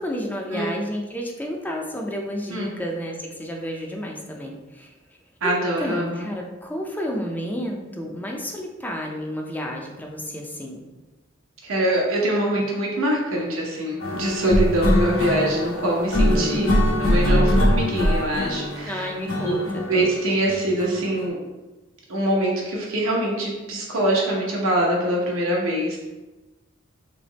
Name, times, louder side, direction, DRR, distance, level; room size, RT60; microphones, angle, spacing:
voice 1, 0.0-4.9 5.4-10.8 16.3-16.7 18.9-19.9, equal, 10° left, 0 dB, 0.5 m, -31 dB
voice 2, 5.4-6.3 11.6-16.7 17.0-19.1 19.4-19.6 19.9-21.4 22.1-26.0, right 1 dB, 90° right, -2 dB, 1.1 m, -24 dB
sound 1, 14.0-21.3, equal, 90° left, 1.2 m, -22 dB
3.3 x 3.0 x 4.0 m, 1.1 s
head